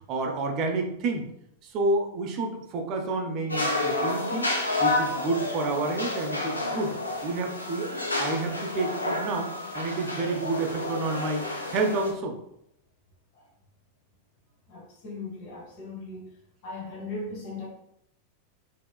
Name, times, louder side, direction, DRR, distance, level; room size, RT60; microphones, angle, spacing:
voice 1, 0.1-1.3 1.7-4.5 4.8-6.9 7.2-7.9 8.2-11.4 11.7-12.3, right 3 dB, 40° right, 3 dB, 0.6 m, -29 dB
sound 1, 3.5-12.1, left 2 dB, 80° left, 0.6 m, -30 dB
voice 2, 14.7-16.4 16.6-17.7, left 3 dB, 45° left, -3 dB, 1.1 m, -38 dB
4.5 x 2.8 x 2.3 m, 0.75 s
figure-of-eight pair, 90°, 0 cm